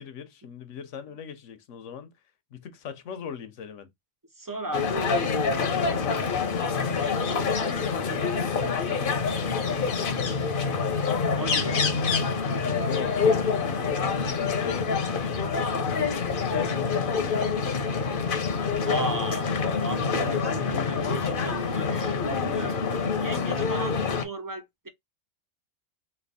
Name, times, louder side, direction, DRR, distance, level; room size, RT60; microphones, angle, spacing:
voice 1, 0.0-2.1 2.5-3.9 5.5-6.8 7.5-10.4 11.0-12.0 12.8-13.8 14.5-15.6 16.2-16.8 17.1-17.5, left 7 dB, 75° left, 1.1 m, -39 dB
voice 2, 4.4-5.2 11.4-11.8 18.8-19.5 19.8-22.8 23.2-24.9, right 1 dB, 25° right, 0.5 m, -35 dB
sound 1, 4.7-24.3, left 5 dB, 50° left, 0.9 m, -26 dB
3.3 x 2.8 x 4.1 m
omnidirectional pair, 1.3 m